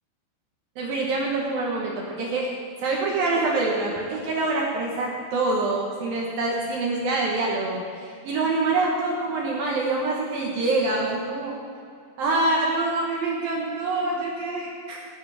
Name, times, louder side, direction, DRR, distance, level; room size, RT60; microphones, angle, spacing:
voice 1, 0.8-2.5 2.8-11.5 12.2-15.0, right 2 dB, 65° right, -2 dB, 2.5 m, -25 dB
17.5 x 11.0 x 5.0 m, 2.3 s
omnidirectional pair, 5.8 m